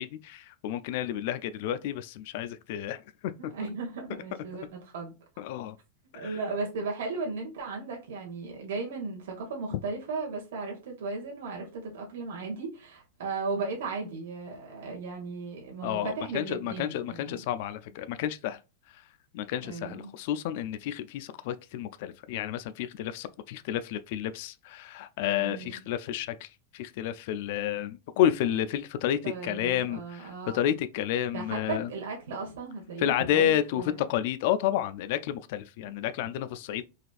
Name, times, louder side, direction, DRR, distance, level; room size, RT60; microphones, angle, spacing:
voice 1, 0.0-3.5 5.4-5.8 6.1-6.3 15.8-18.6 19.3-31.9 33.0-36.8, left 11 dB, 55° left, 0.3 m, -30 dB
voice 2, 3.5-5.1 6.1-17.4 19.6-20.1 25.4-25.8 29.2-30.7 31.3-34.0, right 4 dB, 80° right, 1.3 m, -36 dB
4.0 x 2.5 x 2.4 m
supercardioid pair, 155°, 0 cm